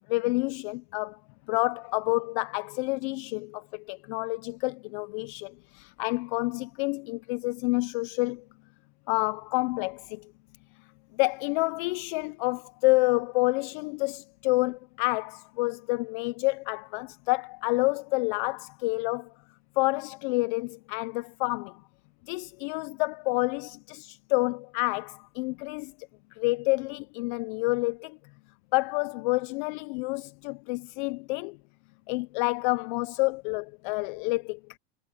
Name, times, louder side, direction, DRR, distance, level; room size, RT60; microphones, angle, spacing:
voice 1, 0.1-1.2 1.5-8.4 9.1-10.3 11.1-19.3 19.8-21.8 22.3-25.9 26.3-28.2 28.7-31.6 32.1-34.6, left 25 dB, 50° left, 0.5 m, -28 dB
supercardioid pair, 160°, 32 cm